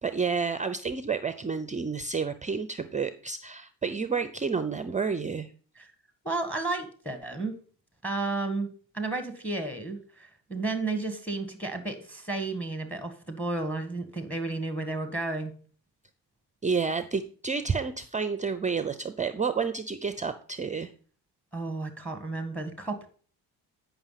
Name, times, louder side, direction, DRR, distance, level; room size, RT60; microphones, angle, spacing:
voice 1, 0.0-5.5 16.6-20.9, right 5 dB, 20° right, 11 dB, 0.5 m, -30 dB
voice 2, 6.2-7.6 8.0-8.7 8.9-15.5 21.5-23.1, right 3 dB, 5° left, 7 dB, 1.6 m, -32 dB
9.4 x 5.8 x 5.7 m, 0.43 s
cardioid pair, 105°, 38 cm